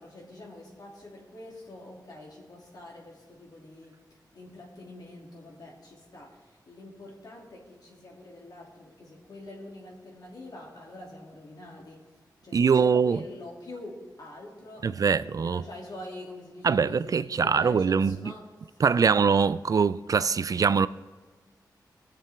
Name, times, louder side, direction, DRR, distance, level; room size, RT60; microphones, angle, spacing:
voice 1, 0.0-3.9 4.3-12.0 12.4-18.4 19.0-19.2, left 1 dB, 65° left, 2.8 m, -45 dB
voice 2, 12.5-13.2 14.8-15.6 16.6-18.3 18.8-20.9, right 6 dB, 50° right, 0.3 m, -23 dB
20.0 x 6.8 x 3.6 m
cardioid pair, 65°, 7 cm